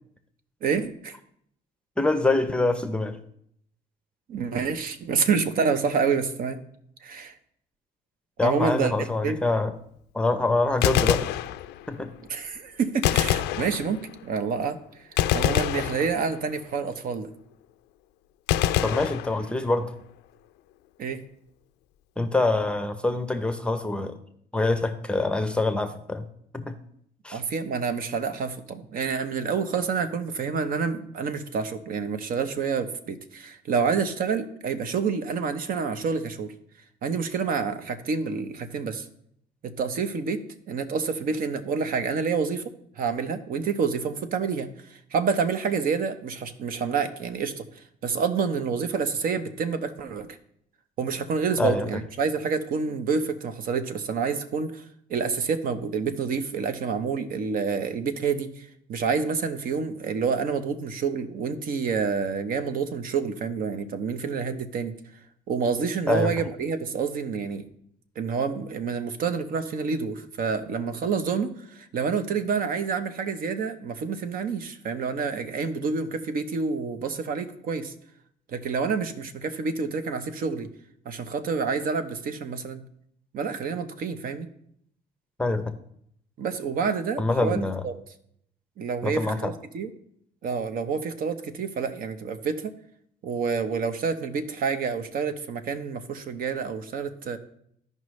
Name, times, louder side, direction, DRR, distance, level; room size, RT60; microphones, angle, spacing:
voice 1, 0.6-1.2 4.3-6.6 7.0-7.3 8.4-9.4 12.3-14.8 15.3-17.3 21.0-21.2 27.3-36.5 37.0-39.1 39.6-42.6 43.0-50.3 51.0-64.9 65.5-67.6 68.2-77.9 78.5-80.7 81.0-82.8 83.3-84.5 86.4-87.6 87.8-87.9 88.8-89.9 90.4-92.7 93.2-97.4, right 5 dB, 60° right, 10 dB, 0.9 m, -28 dB
voice 2, 2.0-3.2 8.4-9.7 10.1-11.3 11.9-12.1 18.8-19.9 22.2-24.2 24.5-26.3 26.5-26.7 27.2-27.4 51.6-51.9 66.1-66.3 85.4-85.7 87.2-87.8 89.0-89.5, left 2 dB, 5° left, 8 dB, 0.6 m, -25 dB
Gunshot gunfire, 10.7-12.0 13.0-14.3 15.2-16.6 18.5-19.8, left 13 dB, 85° left, 0.4 m, -26 dB
14.5 x 5.3 x 3.2 m, 0.70 s
cardioid pair, 110°, 17 cm